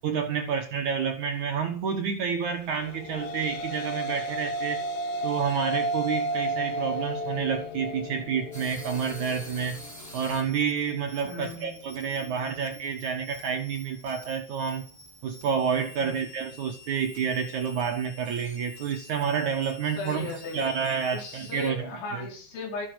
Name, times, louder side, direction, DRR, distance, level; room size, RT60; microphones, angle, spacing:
voice 1, 0.0-4.8 5.2-9.9 10.1-14.8 15.2-21.8 22.1-22.3, right 6 dB, 65° right, 2.0 m, -29 dB
sound 1, 2.8-11.3, right 1 dB, 60° left, 2.4 m, -33 dB
sound 2, 8.5-21.7, left 1 dB, 5° left, 4.7 m, -48 dB
voice 2, 11.2-12.7 15.9-16.2 20.0-20.8 21.1-22.9, left 2 dB, 90° left, 6.7 m, -37 dB
14.0 x 11.5 x 6.3 m
omnidirectional pair, 5.2 m